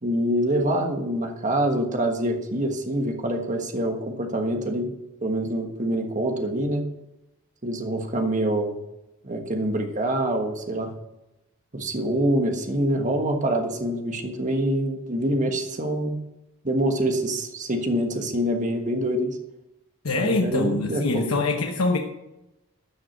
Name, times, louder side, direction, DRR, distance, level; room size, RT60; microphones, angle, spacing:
voice 1, 0.0-4.9 5.2-6.8 7.6-8.8 9.2-10.9 11.7-16.2 16.6-19.4 20.2-21.3, right 1 dB, 35° right, 4 dB, 1.4 m, -25 dB
voice 2, 20.0-22.0, left 2 dB, 80° left, 2 dB, 1.0 m, -24 dB
13.0 x 6.2 x 7.8 m, 0.95 s
head